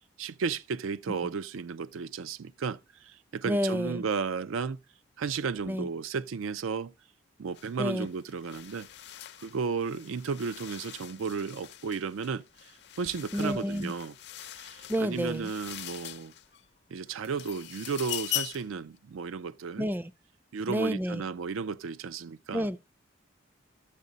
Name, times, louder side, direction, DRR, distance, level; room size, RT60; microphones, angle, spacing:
voice 1, 0.2-4.8 5.2-6.9 7.4-8.9 9.4-12.7 13.0-14.1 14.6-16.3 16.9-19.9 20.5-22.7, right 5 dB, 85° right, 0.4 m, -34 dB
voice 2, 3.5-4.0 5.7-5.9 7.8-8.1 13.3-13.9 14.9-15.5 19.8-20.1 20.7-21.2 22.5-22.8, equal, 10° right, 0.4 m, -29 dB
sound 1, 7.5-7.7 8.0-16.6 17.1-18.7, left 14 dB, 55° left, 0.5 m, -41 dB
12.0 x 7.3 x 4.0 m
head